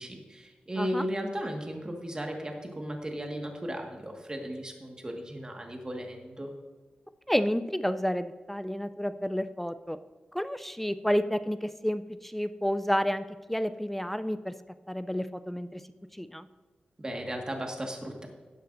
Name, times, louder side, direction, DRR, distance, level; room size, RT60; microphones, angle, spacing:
voice 1, 0.0-6.5 17.0-18.3, equal, 25° right, 2 dB, 1.7 m, -36 dB
voice 2, 0.8-1.1 7.3-10.0 10.3-14.5 14.9-15.8 16.1-16.5, equal, 5° left, 12 dB, 0.4 m, -30 dB
13.5 x 10.0 x 2.6 m, 1.4 s
cardioid pair, 75°, 3 cm